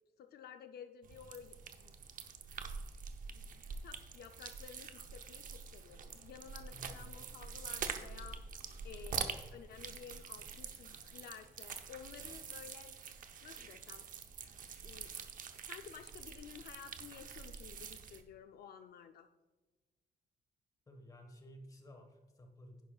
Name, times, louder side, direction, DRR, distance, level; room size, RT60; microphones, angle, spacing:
voice 1, 0.2-1.9 2.9-3.0 3.3-3.4 3.8-8.4 8.8-12.9 13.4-14.0 14.8-15.1 15.7-19.3, left 8 dB, 70° left, 7 dB, 0.5 m, -53 dB
sound 1, 1.0-18.2, right 6 dB, 55° right, 0.8 m, -46 dB
voice 2, 6.7-7.0 20.9-22.8, equal, 20° left, 4 dB, 1.4 m, -54 dB
11.0 x 10.5 x 2.4 m, 1.2 s
wide cardioid pair, 170°, 17 cm